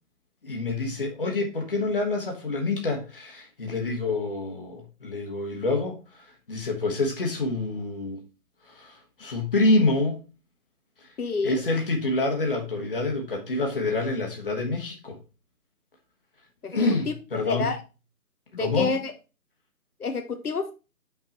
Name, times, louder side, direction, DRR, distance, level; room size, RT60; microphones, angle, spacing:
voice 1, 0.4-6.0 6.5-8.2 8.7-10.2 11.4-15.2 16.7-17.7 18.6-18.9, left 2 dB, 35° left, 1.3 m, -27 dB
voice 2, 11.2-11.6 16.6-16.7 17.1-17.2 17.5-17.8 18.5-19.1 20.0-20.7, left 4 dB, 80° left, 1.0 m, -28 dB
5.9 x 4.6 x 4.0 m
figure-of-eight pair, 170°, 45 cm